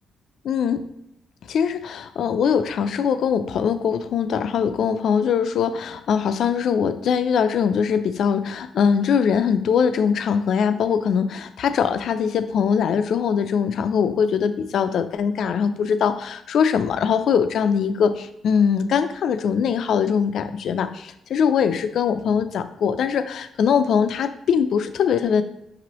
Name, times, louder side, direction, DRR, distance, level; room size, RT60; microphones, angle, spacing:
voice 1, 0.4-0.9 1.5-25.4, left 7 dB, 65° left, 10 dB, 0.3 m, -22 dB
5.9 x 2.9 x 3.0 m, 0.83 s
cardioid pair, 90°, 0 cm